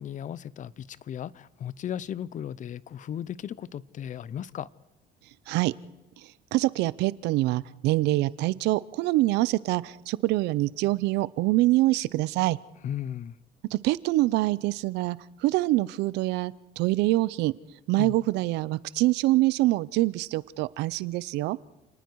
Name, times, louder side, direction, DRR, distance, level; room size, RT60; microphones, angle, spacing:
voice 1, 0.0-4.7 12.8-13.3 18.0-18.1, left 9 dB, 50° left, 0.7 m, -36 dB
voice 2, 6.5-12.6 13.7-17.5 17.9-21.6, right 18 dB, 90° right, 0.7 m, -25 dB
30.0 x 19.5 x 4.7 m
cardioid pair, 110°, 17 cm